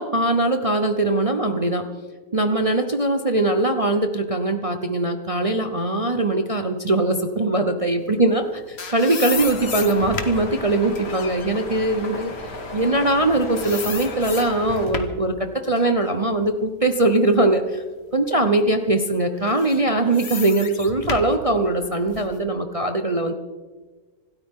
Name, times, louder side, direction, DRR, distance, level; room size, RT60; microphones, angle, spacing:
voice 1, 0.0-1.9 2.3-12.3 12.7-17.8 18.1-23.3, right 2 dB, 30° right, 6 dB, 0.6 m, -21 dB
sound 1, 8.3-13.3 13.6-15.3 15.8-17.7 18.2-18.3 19.4-22.4, left 5 dB, 40° left, 1.3 m, -34 dB
sound 2, 9.3-14.9, left 2 dB, 80° left, 2.9 m, -35 dB
26.5 x 13.0 x 3.8 m, 1.4 s
omnidirectional pair, 1.8 m